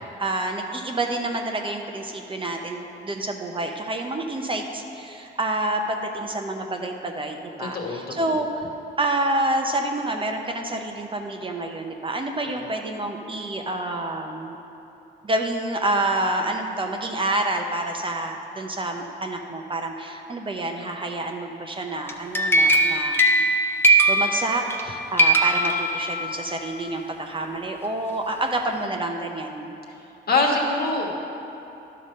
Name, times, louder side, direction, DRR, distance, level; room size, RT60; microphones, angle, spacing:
voice 1, 0.2-8.7 9.0-14.6 15.2-23.5 24.1-29.8, right 2 dB, 25° right, 3 dB, 0.7 m, -28 dB
voice 2, 7.6-8.4 12.4-12.6 30.3-31.1, left 3 dB, 50° left, 0 dB, 1.4 m, -24 dB
sound 1, 22.1-24.9 25.2-26.5, right 1 dB, 10° left, 0.6 m, -20 dB
11.0 x 3.9 x 6.5 m, 2.9 s
cardioid pair, 90°, 20 cm